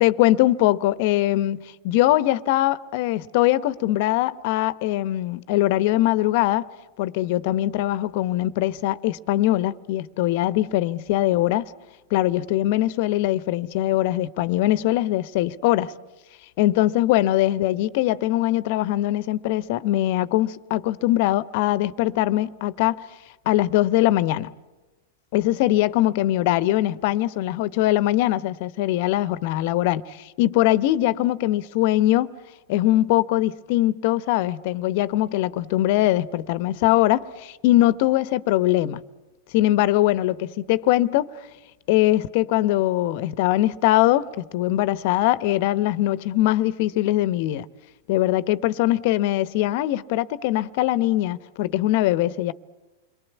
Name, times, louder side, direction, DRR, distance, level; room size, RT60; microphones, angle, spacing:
voice 1, 0.0-6.7 7.0-11.7 12.1-15.9 16.6-23.1 23.5-24.5 25.3-32.3 32.7-39.0 39.5-41.3 41.9-47.7 48.1-52.5, left 15 dB, 55° left, 0.9 m, -21 dB
29.0 x 22.5 x 8.3 m
hypercardioid pair, 105°, 0 cm